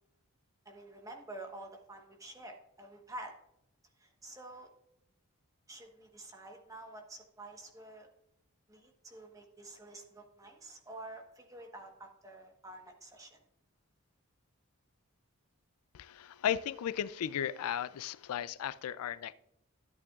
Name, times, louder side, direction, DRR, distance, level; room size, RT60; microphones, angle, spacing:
voice 1, 0.6-3.4 4.0-4.7 5.7-8.1 8.7-13.4, right 2 dB, 15° right, 3 dB, 1.1 m, -49 dB
voice 2, 15.9-19.3, left 9 dB, 80° left, 16 dB, 0.4 m, -35 dB
13.0 x 8.4 x 2.4 m, 0.81 s
head